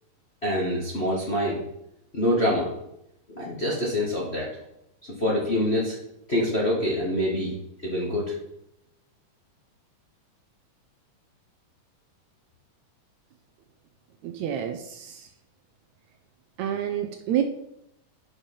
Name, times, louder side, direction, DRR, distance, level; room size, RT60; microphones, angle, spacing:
voice 1, 0.4-1.6 2.1-2.7 3.3-4.5 5.2-6.0 6.3-7.5 7.8-8.3, left 1 dB, 30° left, -5 dB, 1.1 m, -25 dB
voice 2, 14.2-15.2 16.6-17.4, right 10 dB, 75° right, 6 dB, 1.8 m, -28 dB
8.7 x 5.4 x 5.4 m, 0.81 s
omnidirectional pair, 3.6 m